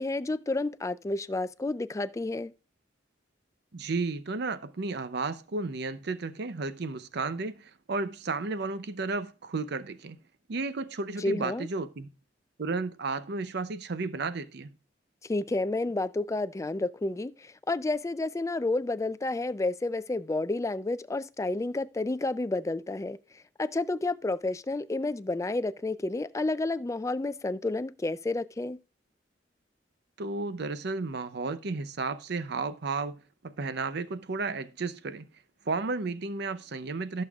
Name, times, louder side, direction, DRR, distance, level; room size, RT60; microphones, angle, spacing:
voice 1, 0.0-2.5 11.2-11.7 15.3-28.8, left 2 dB, 15° left, 0.3 m, -30 dB
voice 2, 3.7-10.2 10.5-12.1 12.6-14.7 30.2-33.2 33.4-35.3 35.7-37.2, right 3 dB, 60° right, 0.6 m, -33 dB
15.0 x 6.8 x 2.4 m
head